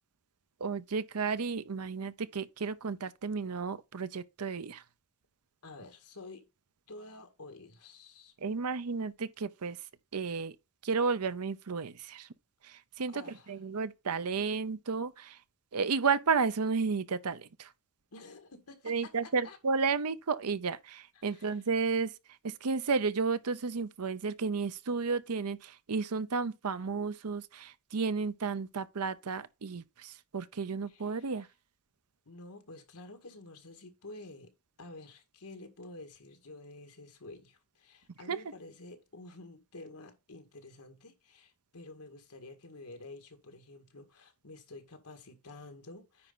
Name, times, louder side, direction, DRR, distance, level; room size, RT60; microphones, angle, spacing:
voice 1, 0.6-4.8 8.4-9.8 10.1-10.6 10.8-12.3 12.6-15.4 15.7-17.7 18.9-22.1 22.4-31.5 38.3-38.4, right 5 dB, 85° right, 0.7 m, -32 dB
voice 2, 5.6-6.5 6.9-8.3 13.1-13.5 18.1-19.1 19.4-19.6 21.2-21.6 30.9-31.4 32.3-34.5 34.8-46.3, left 2 dB, 85° left, 1.9 m, -50 dB
9.7 x 4.3 x 3.9 m
head